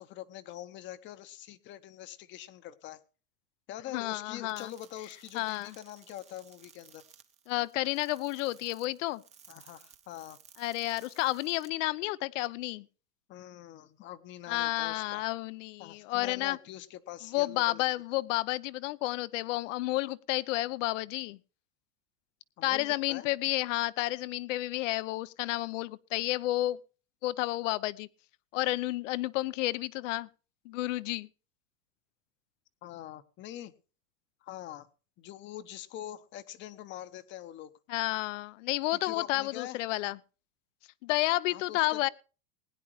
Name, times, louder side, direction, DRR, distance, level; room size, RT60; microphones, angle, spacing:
voice 1, 0.0-3.0 3.7-7.0 9.5-10.4 13.3-15.3 15.8-17.8 22.6-23.3 32.8-33.7 34.4-34.9 35.2-37.7 38.9-39.8 41.5-42.0, left 12 dB, 30° left, 0.9 m, -44 dB
voice 2, 3.9-4.7 5.3-5.7 7.5-9.2 10.6-12.9 14.5-16.6 17.3-21.4 22.6-26.8 27.2-28.1 28.5-30.3 30.6-31.3 37.9-40.2 41.0-42.1, left 18 dB, 70° left, 0.8 m, -31 dB
sound 1, 4.5-11.7, right 7 dB, 15° right, 0.8 m, -58 dB
21.0 x 10.0 x 3.1 m
supercardioid pair, 155°, 40 cm